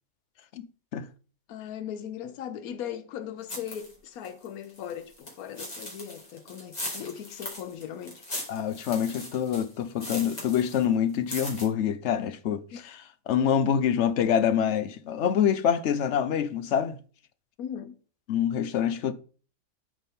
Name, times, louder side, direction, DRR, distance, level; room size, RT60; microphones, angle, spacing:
voice 1, 1.5-8.2 12.7-12.8 17.6-18.0, left 9 dB, 90° left, 1.1 m, -38 dB
sound 1, 3.5-3.9 4.2-10.8 11.1-11.7, left 1 dB, 30° left, 2.1 m, -39 dB
voice 2, 8.5-13.0 13.3-17.0 18.3-19.1, left 8 dB, 60° left, 0.9 m, -26 dB
12.0 x 4.3 x 3.5 m
omnidirectional pair, 1.5 m